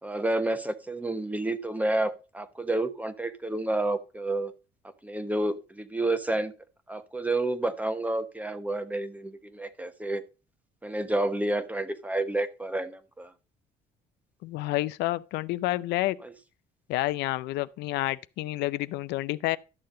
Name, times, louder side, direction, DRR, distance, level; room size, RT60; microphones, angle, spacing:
voice 1, 0.0-4.5 5.0-6.5 6.9-10.2 10.8-13.3 16.2-16.3, right 2 dB, 10° right, 1.0 m, -30 dB
voice 2, 14.4-16.2 16.9-19.6, left 17 dB, 85° left, 0.5 m, -29 dB
12.0 x 6.7 x 3.8 m
cardioid pair, 110°, 17 cm